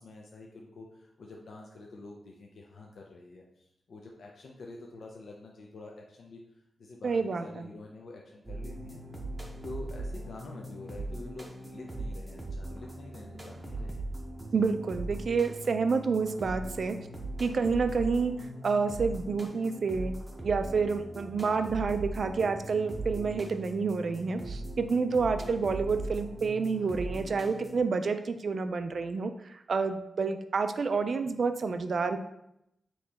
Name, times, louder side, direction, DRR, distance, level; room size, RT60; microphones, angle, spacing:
voice 1, 0.0-9.0 9.6-14.1 14.5-14.6 26.8-27.3, left 2 dB, 60° left, -1 dB, 0.5 m, -47 dB
voice 2, 7.0-7.7 14.5-17.0 17.4-18.3 18.6-20.1 20.4-32.2, right 4 dB, 50° right, 8 dB, 0.3 m, -29 dB
sound 1, 8.5-27.8, right 2 dB, 10° right, 0.7 m, -40 dB
4.2 x 3.1 x 3.4 m, 0.80 s
wide cardioid pair, 160°, 0 cm